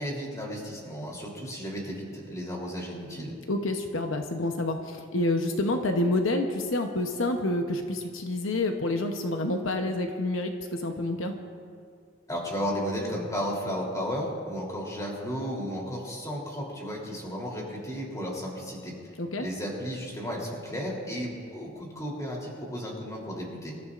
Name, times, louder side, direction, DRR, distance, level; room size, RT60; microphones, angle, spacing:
voice 1, 0.0-3.3 12.3-18.9 19.4-23.7, equal, 15° left, -3 dB, 3.3 m, -34 dB
voice 2, 3.5-11.4 19.2-19.5, left 2 dB, 80° left, 4 dB, 0.9 m, -28 dB
26.5 x 14.0 x 2.5 m, 2.2 s
head